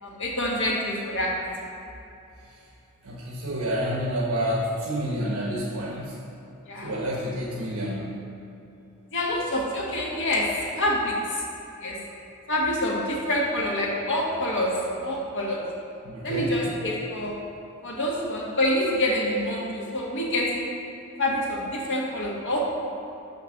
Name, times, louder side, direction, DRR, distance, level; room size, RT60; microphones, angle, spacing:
voice 1, 0.0-1.3 6.7-6.9 9.1-10.5 10.8-11.4 11.8-12.0 12.5-14.7 15.0-15.6 16.2-17.4 17.8-20.6 21.2-22.6, left 1 dB, 60° left, -3 dB, 1.6 m, -26 dB
voice 2, 3.0-6.1 6.8-8.1 16.0-16.5, equal, 80° right, -4 dB, 1.2 m, -29 dB
6.7 x 5.3 x 6.6 m, 2.7 s
head